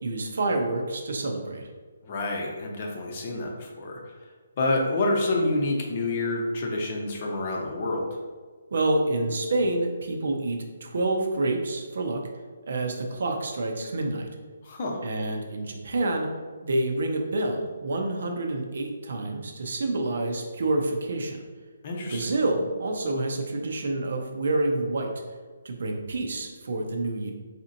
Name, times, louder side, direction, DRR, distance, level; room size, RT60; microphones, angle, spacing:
voice 1, 0.0-1.7 8.7-12.2 12.7-14.3 15.0-16.3 16.6-21.4 22.1-25.1 25.6-27.3, right 2 dB, 65° right, 3 dB, 0.6 m, -28 dB
voice 2, 2.0-4.1 4.6-8.1 14.6-15.0 21.8-22.3, left 2 dB, 45° left, 0 dB, 0.7 m, -28 dB
4.1 x 2.9 x 2.6 m, 1.5 s
hypercardioid pair, 155°, 0 cm